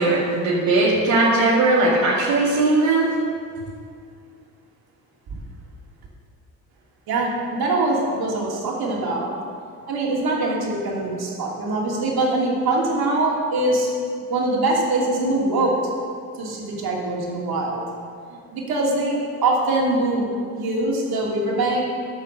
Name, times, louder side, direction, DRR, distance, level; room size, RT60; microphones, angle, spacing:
voice 1, 0.0-3.1, right 2 dB, 85° right, -6 dB, 2.1 m, -19 dB
voice 2, 7.1-9.3 9.9-13.9 14.3-15.8 16.4-17.8 18.5-20.3 20.5-21.8, right 2 dB, 60° right, -3 dB, 2.9 m, -23 dB
14.0 x 5.8 x 6.6 m, 2.2 s
supercardioid pair, 65°, 41 cm